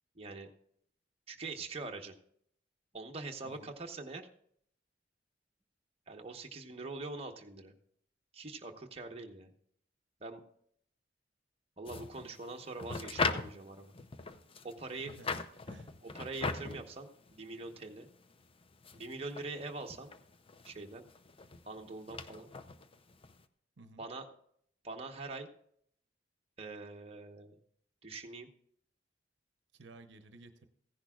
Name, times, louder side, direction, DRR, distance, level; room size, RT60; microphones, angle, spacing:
voice 1, 0.1-0.5 1.3-2.1 2.9-4.3 6.1-7.7 8.3-9.5 10.2-10.4 11.8-13.9 14.6-15.1 16.1-18.1 18.9-20.1 20.6-21.0 21.7-22.5 24.0-24.2 24.8-25.5 26.6-27.6 28.0-28.5, right 3 dB, 35° right, 2 dB, 1.0 m, -43 dB
voice 2, 3.4-3.7 14.9-15.9 23.8-24.0 29.7-30.7, right 2 dB, 75° right, 8 dB, 0.8 m, -55 dB
sound 1, 11.9-23.4, left 4 dB, 30° left, 0.6 m, -40 dB
15.5 x 10.5 x 2.4 m, 0.66 s
head